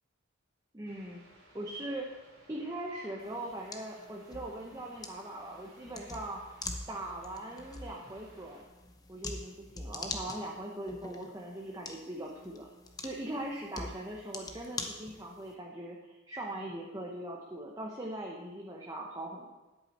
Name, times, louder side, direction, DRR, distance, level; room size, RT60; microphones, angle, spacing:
voice 1, 0.7-1.2 1.5-2.2 2.5-6.4 6.9-8.6 9.1-12.7 13.0-19.5, right 1 dB, 15° right, -2 dB, 0.8 m, -40 dB
sound 1, 0.8-8.6, right 1 dB, 80° right, 2.9 m, -60 dB
sound 2, 3.2-15.5, left 3 dB, 15° left, 0.7 m, -45 dB
10.5 x 8.5 x 4.3 m, 1.1 s
head